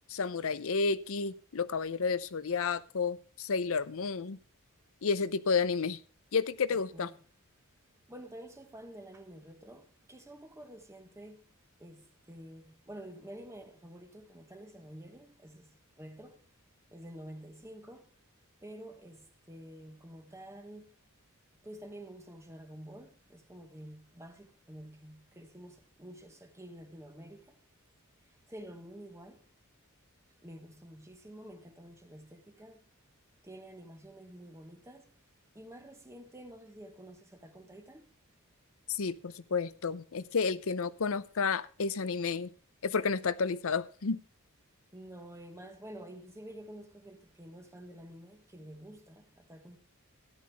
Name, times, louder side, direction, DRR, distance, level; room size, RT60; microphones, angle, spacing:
voice 1, 0.1-4.4 5.0-6.0 6.3-7.1 38.9-42.5 42.8-44.2, left 5 dB, 65° left, 0.6 m, -31 dB
voice 2, 6.7-7.2 8.1-11.4 11.8-16.4 16.9-18.1 18.6-21.0 21.6-27.6 28.5-29.4 30.4-32.8 33.4-35.1 35.5-38.1 44.9-49.8, right 1 dB, 15° right, 1.0 m, -49 dB
13.5 x 10.5 x 3.5 m
head